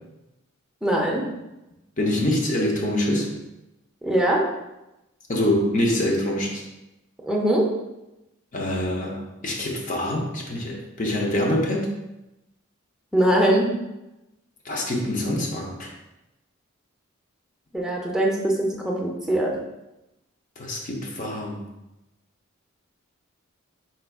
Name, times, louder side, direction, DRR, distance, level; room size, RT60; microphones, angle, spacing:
voice 1, 0.8-1.3 4.0-4.5 7.2-7.7 13.1-13.7 17.7-19.5, right 1 dB, 5° right, -3 dB, 0.6 m, -22 dB
voice 2, 2.0-3.3 5.3-6.6 8.5-11.9 14.6-15.9 20.6-21.6, left 1 dB, 35° left, 0 dB, 0.6 m, -25 dB
4.6 x 4.3 x 2.3 m, 0.95 s
head